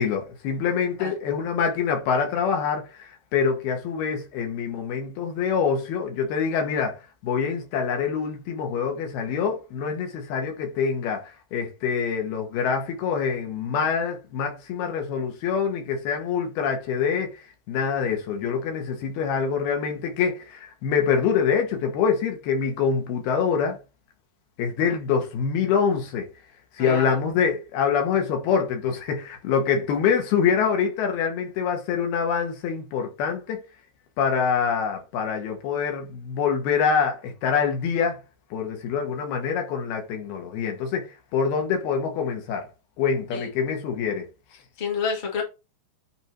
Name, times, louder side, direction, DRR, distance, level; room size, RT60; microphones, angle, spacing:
voice 1, 0.0-23.8 24.6-26.3 26.7-33.6 34.2-38.2 38.5-41.1 41.3-42.7 43.0-44.3, left 6 dB, 70° left, 3.1 m, -25 dB
voice 2, 26.8-27.1 43.3-43.5 44.8-45.4, left 5 dB, 20° left, 1.1 m, -29 dB
9.0 x 3.5 x 4.4 m
omnidirectional pair, 4.9 m